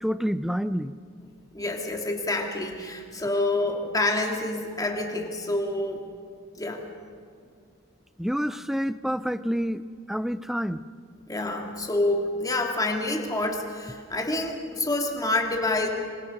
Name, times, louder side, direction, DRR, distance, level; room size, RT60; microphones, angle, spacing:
voice 1, 0.0-0.9 8.2-9.8 10.1-10.8, equal, ahead, 14 dB, 0.5 m, -28 dB
voice 2, 1.5-6.0 6.6-6.8 11.3-15.9, left 2 dB, 20° left, 2 dB, 2.6 m, -27 dB
26.5 x 23.5 x 5.4 m, 2.2 s
head